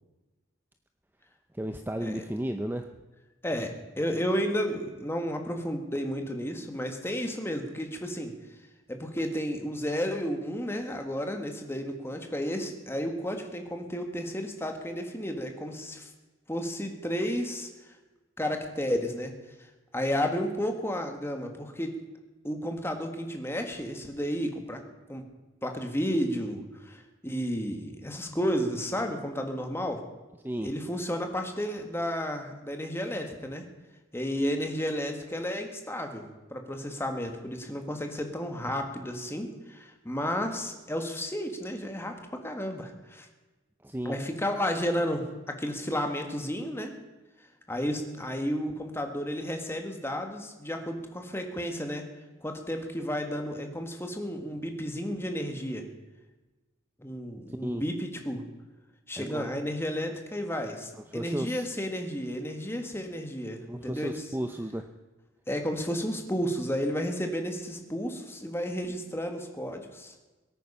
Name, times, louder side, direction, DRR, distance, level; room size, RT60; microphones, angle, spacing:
voice 1, 1.5-2.9 30.4-30.7 43.8-44.2 57.5-57.8 59.2-59.5 61.1-61.7 63.7-64.9, right 1 dB, 10° right, 6 dB, 0.5 m, -34 dB
voice 2, 3.4-8.3 8.9-16.1 16.5-17.9 18.4-19.3 19.9-21.9 22.4-24.8 25.1-25.2 25.6-30.0 30.6-33.6 34.1-43.3 44.0-46.9 47.7-52.1 52.4-55.9 57.0-58.4 59.1-64.2 65.5-70.1, equal, 10° left, 4 dB, 1.6 m, -32 dB
22.0 x 9.1 x 5.6 m, 1.2 s
head